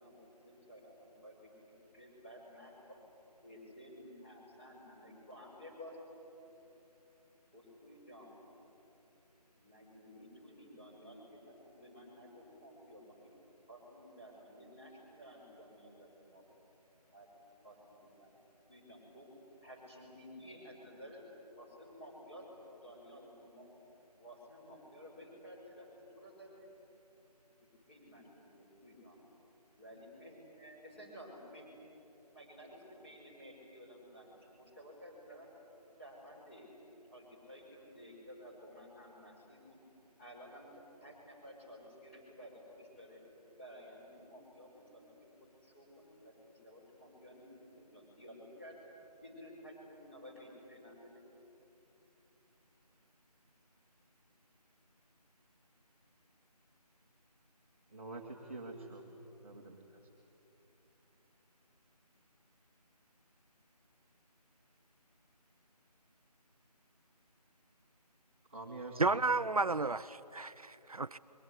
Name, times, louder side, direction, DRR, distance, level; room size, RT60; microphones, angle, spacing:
voice 1, 0.0-3.1 3.4-6.4 7.5-8.4 9.6-13.1 13.7-16.4 17.1-17.3 17.6-18.4 18.7-19.3 19.6-21.2 21.6-23.7 24.1-25.9 26.2-26.7 27.9-28.3 28.5-29.2 29.8-35.6 36.0-36.7 37.1-39.8 40.2-43.2 43.6-45.3 45.6-46.3 46.6-48.9 49.2-51.2, equal, 15° left, -4 dB, 5.4 m, -54 dB
voice 2, 57.9-59.0 59.4-59.9 68.5-69.2, right 2 dB, 20° right, -4 dB, 1.6 m, -46 dB
voice 3, 69.0-71.2, right 3 dB, 60° right, 12 dB, 0.6 m, -32 dB
26.5 x 23.0 x 9.7 m, 2.9 s
figure-of-eight pair, 170°, 21 cm